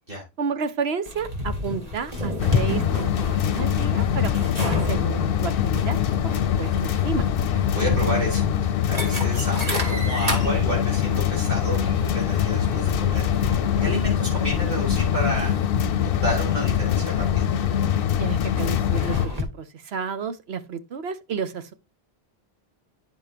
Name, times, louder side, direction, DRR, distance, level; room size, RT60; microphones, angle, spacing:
voice 1, 0.4-6.0 6.2-7.3 18.2-21.7, right 6 dB, 80° right, 1.2 m, -31 dB
sound 1, 1.1-19.4, left 2 dB, 40° right, 2.3 m, -33 dB
sound 2, 2.4-19.3, left 9 dB, 65° left, 0.8 m, -23 dB
voice 2, 7.7-13.3 13.8-15.6 16.0-17.5, equal, 60° right, 4.3 m, -30 dB
10.0 x 6.9 x 2.9 m
omnidirectional pair, 1.0 m